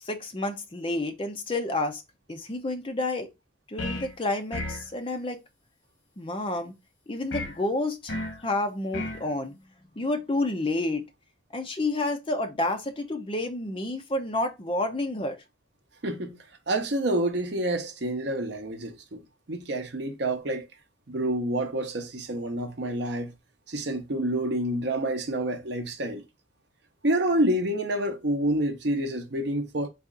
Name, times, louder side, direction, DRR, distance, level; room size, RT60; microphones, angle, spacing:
voice 1, 0.0-2.0 2.3-3.3 3.7-5.4 6.2-6.7 7.1-8.2 8.4-9.6 10.0-11.0 11.5-15.4, left 2 dB, 25° left, 0.5 m, -29 dB
sound 1, 3.8-4.1 4.5-4.9 7.3-7.6 8.1-8.4 8.9-9.2, left 2 dB, 85° left, 1.0 m, -33 dB
voice 2, 16.0-16.4 16.7-19.2 19.5-20.7 21.1-23.3 23.7-26.2 27.0-29.9, right 1 dB, 60° right, 0.7 m, -28 dB
4.1 x 2.4 x 3.7 m
head